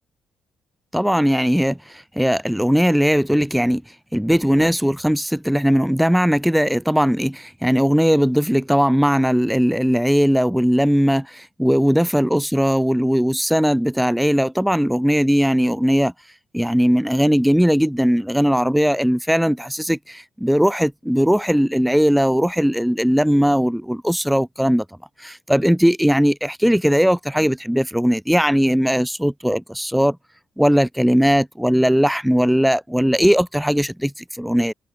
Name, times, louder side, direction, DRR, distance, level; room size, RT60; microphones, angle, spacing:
voice 1, 0.9-1.8 2.2-3.8 4.1-16.1 16.5-24.8 25.2-30.2 30.6-34.7, equal, ahead, 1.1 m, -18 dB
cardioid pair, 85°, 0 cm